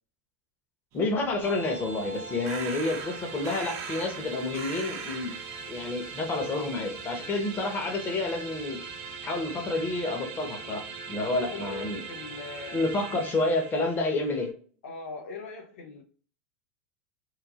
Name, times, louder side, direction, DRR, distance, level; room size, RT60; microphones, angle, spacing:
voice 1, 0.9-5.3 5.7-8.8 9.2-12.0 12.7-14.5, left 2 dB, 30° left, 0.8 m, -29 dB
sound 1, 0.9-13.0, right 6 dB, 50° right, 0.6 m, -45 dB
sound 2, 1.4-14.5, right 4 dB, 70° right, 1.0 m, -41 dB
voice 2, 11.5-13.2 14.8-16.0, left 4 dB, 85° left, 0.6 m, -41 dB
3.1 x 2.3 x 2.3 m
supercardioid pair, 120°, 7 cm